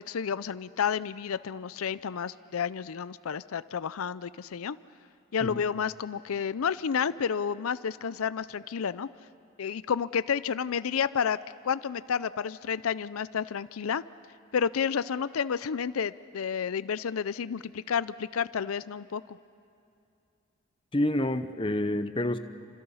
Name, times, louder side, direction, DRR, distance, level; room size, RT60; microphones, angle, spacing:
voice 1, 0.0-4.8 5.3-9.1 9.6-11.4 11.6-14.0 14.5-19.4, left 7 dB, 90° left, 16 dB, 0.5 m, -30 dB
voice 2, 20.9-22.4, left 1 dB, 25° left, 10 dB, 0.8 m, -28 dB
29.0 x 26.5 x 5.6 m, 2.6 s
head